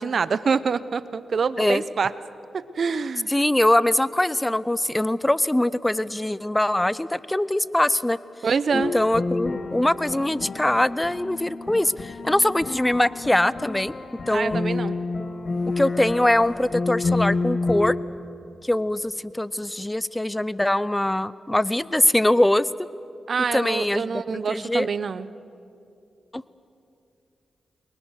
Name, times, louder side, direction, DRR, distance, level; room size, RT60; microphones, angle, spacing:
voice 1, 0.0-2.1 2.5-3.3 8.4-8.9 14.3-14.9 23.3-25.3, right 5 dB, 60° right, 15 dB, 0.8 m, -26 dB
voice 2, 3.3-8.2 8.7-13.9 14.3-14.6 15.8-18.0 18.6-22.7 23.5-24.2 24.5-24.9 26.3-26.4, left 1 dB, 15° left, 18 dB, 0.6 m, -22 dB
sound 1, 8.7-18.0, left 3 dB, 55° left, 1.6 m, -29 dB
29.5 x 23.0 x 6.5 m, 2.6 s
cardioid pair, 60°, 0 cm